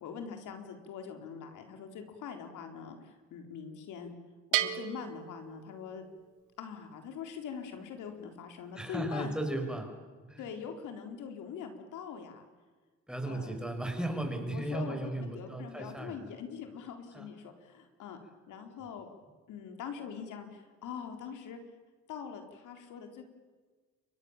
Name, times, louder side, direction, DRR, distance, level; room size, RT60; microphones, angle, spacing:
voice 1, 0.0-4.2 4.5-6.1 6.6-9.4 10.4-12.5 13.3-13.6 14.5-18.2 18.5-19.1 19.5-21.6 22.1-23.3, left 7 dB, 85° left, 5 dB, 4.1 m, -43 dB
Bell, 4.5-6.2, right 13 dB, 80° right, 1.5 m, -34 dB
voice 2, 8.7-10.0 10.3-10.4 13.1-16.3 17.1-17.3 18.8-18.9, right 1 dB, 5° right, 4 dB, 5.7 m, -36 dB
29.5 x 23.5 x 7.4 m, 1.4 s
cardioid pair, 90°, 30 cm